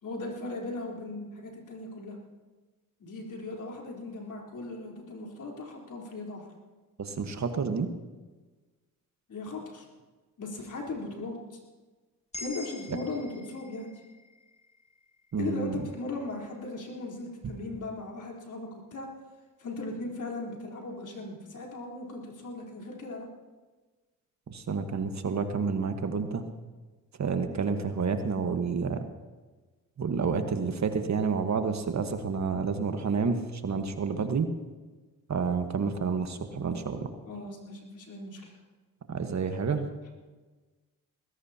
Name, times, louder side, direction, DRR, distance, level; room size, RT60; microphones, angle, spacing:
voice 1, 0.0-2.2 3.0-6.5 9.3-9.9 10.4-11.6 12.4-13.9 15.4-19.1 19.6-23.3 37.3-38.5, left 2 dB, 55° left, -1 dB, 4.0 m, -38 dB
voice 2, 7.0-7.9 15.3-15.8 24.5-26.5 27.2-29.0 30.0-34.5 35.3-37.1 39.1-39.9, right 5 dB, 50° right, 7 dB, 1.5 m, -29 dB
sound 1, 12.3-16.6, left 1 dB, 20° left, 1.8 m, -47 dB
20.0 x 16.5 x 2.9 m, 1.3 s
supercardioid pair, 60°, 35 cm